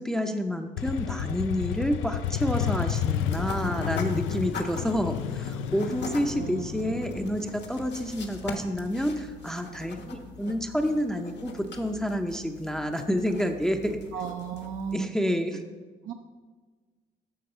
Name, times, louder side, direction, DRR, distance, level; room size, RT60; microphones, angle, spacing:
voice 1, 0.0-14.0 14.9-15.6, equal, 5° left, 5 dB, 0.5 m, -29 dB
Motorcycle, 0.8-8.4, left 9 dB, 80° left, 0.4 m, -31 dB
sound 1, 3.0-14.9, left 3 dB, 60° left, 1.2 m, -41 dB
voice 2, 6.3-6.7 10.4-10.5 14.1-15.1 16.1-16.2, right 7 dB, 70° right, 3 dB, 0.6 m, -35 dB
9.5 x 3.6 x 6.7 m, 1.4 s
cardioid pair, 90°, 20 cm